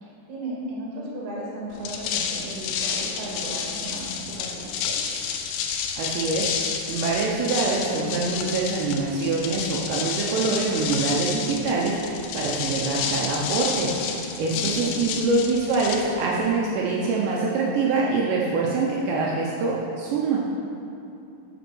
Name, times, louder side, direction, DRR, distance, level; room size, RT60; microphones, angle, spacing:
voice 1, 0.0-5.0 14.4-15.0, right 1 dB, 55° right, -4 dB, 3.7 m, -35 dB
sound 1, 1.7-16.5, left 7 dB, 85° left, 2.4 m, -30 dB
voice 2, 6.0-20.4, right 3 dB, 80° right, -3 dB, 2.6 m, -25 dB
8.2 x 7.1 x 6.2 m, 2.6 s
omnidirectional pair, 5.9 m